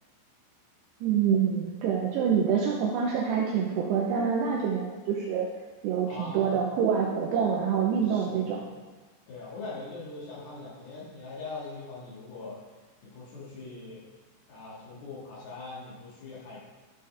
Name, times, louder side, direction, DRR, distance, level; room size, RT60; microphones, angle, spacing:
voice 1, 1.0-5.5 5.8-8.6, right 7 dB, 90° right, -1 dB, 2.4 m, -26 dB
voice 2, 6.1-6.6 8.1-8.5 9.3-12.6 13.0-14.0 14.5-16.6, left 3 dB, 60° left, -6 dB, 3.1 m, -41 dB
12.5 x 5.5 x 3.3 m, 1.3 s
omnidirectional pair, 5.7 m